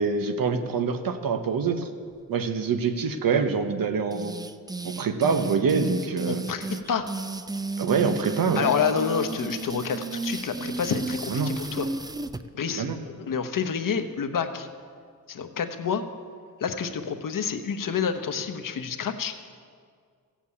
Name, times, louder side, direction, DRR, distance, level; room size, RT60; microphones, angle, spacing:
voice 1, 0.0-1.9 2.3-4.4 4.8-6.4 7.8-8.7 11.3-11.5 12.7-13.0, right 5 dB, 75° right, 8 dB, 1.1 m, -25 dB
sound 1, 4.1-12.4, right 3 dB, 10° right, 0.3 m, -33 dB
voice 2, 6.3-7.1 8.6-11.9 12.5-14.7 15.3-16.1 16.6-19.4, left 6 dB, 65° left, 8 dB, 1.0 m, -28 dB
15.5 x 7.5 x 8.4 m, 2.1 s
wide cardioid pair, 170°, 34 cm